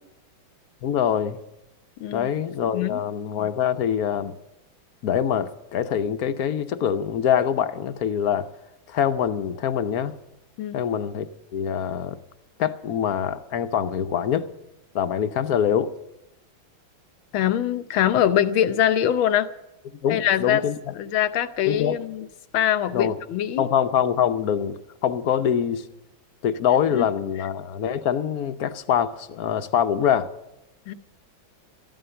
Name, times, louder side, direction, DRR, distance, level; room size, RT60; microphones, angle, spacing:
voice 1, 0.8-1.4 2.1-4.3 5.0-8.5 8.9-10.2 10.7-11.3 11.5-12.2 12.6-14.5 14.9-15.9 20.0-20.9 21.7-22.0 22.9-23.2 23.6-25.8 26.4-30.3, left 8 dB, 60° left, 10 dB, 1.1 m, -24 dB
voice 2, 17.3-19.5 20.1-20.6 21.0-22.3 22.5-23.7 26.9-27.1 30.9-31.0, left 10 dB, 90° left, 12 dB, 1.7 m, -23 dB
13.5 x 13.0 x 6.9 m, 0.93 s
omnidirectional pair, 2.2 m